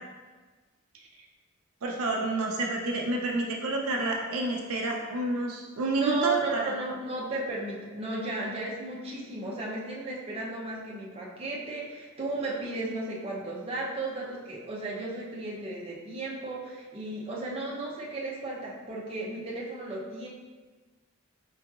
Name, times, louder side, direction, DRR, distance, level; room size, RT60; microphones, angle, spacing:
voice 1, 1.8-6.7, right 2 dB, 85° right, 0 dB, 0.5 m, -29 dB
voice 2, 5.9-20.3, right 2 dB, 30° right, -5 dB, 0.6 m, -34 dB
4.7 x 2.9 x 2.3 m, 1.4 s
head